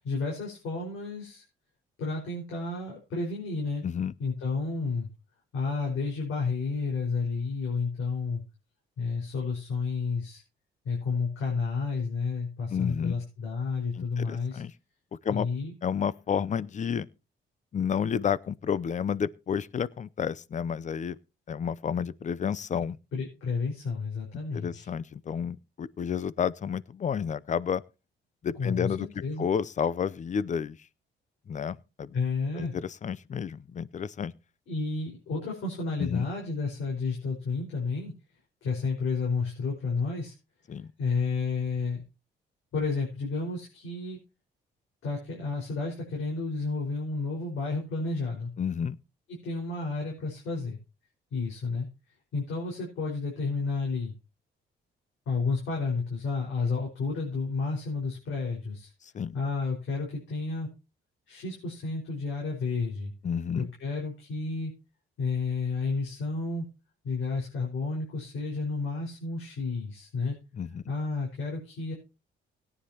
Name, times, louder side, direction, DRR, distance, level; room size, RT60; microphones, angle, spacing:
voice 1, 0.0-1.4 2.0-3.8 4.2-5.1 5.5-8.4 9.0-10.4 10.9-14.6 15.3-15.7 23.1-24.9 28.6-29.5 32.1-32.7 34.7-38.1 38.6-40.3 41.0-42.0 42.7-44.2 45.0-48.5 49.3-50.8 51.3-51.9 52.3-54.1 55.3-58.9 59.3-60.7 61.3-63.1 63.5-64.7 65.2-66.7 67.0-70.4 70.9-71.9, left 4 dB, 80° left, 5.0 m, -31 dB
voice 2, 3.8-4.1 12.7-13.2 14.0-14.7 15.2-15.5 15.8-17.1 17.7-21.2 21.5-23.0 24.5-27.8 28.4-29.1 29.4-30.8 31.5-32.1 32.6-34.3 36.0-36.3 40.7-40.9 48.6-49.0 59.1-59.4 63.2-63.7 70.6-70.8, left 7 dB, 40° left, 0.6 m, -30 dB
17.5 x 9.8 x 2.9 m
cardioid pair, 90°, 20 cm